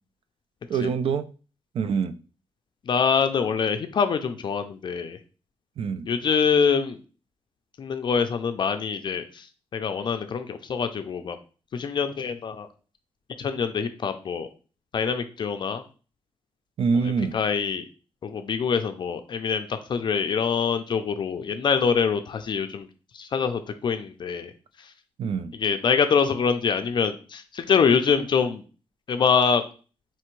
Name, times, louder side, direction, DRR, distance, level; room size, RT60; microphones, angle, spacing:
voice 1, 0.7-1.3 1.7-2.2 5.8-6.1 16.8-17.4 25.2-25.5, right 5 dB, 70° right, 0.4 m, -25 dB
voice 2, 2.9-5.2 6.1-7.0 7.8-9.5 9.7-11.4 11.7-12.7 13.4-14.5 14.9-15.8 17.3-17.8 18.2-22.9 23.2-24.5 25.6-28.6 29.1-29.6, left 6 dB, 50° left, 0.4 m, -24 dB
4.4 x 3.3 x 3.1 m
wide cardioid pair, 160°, 10 cm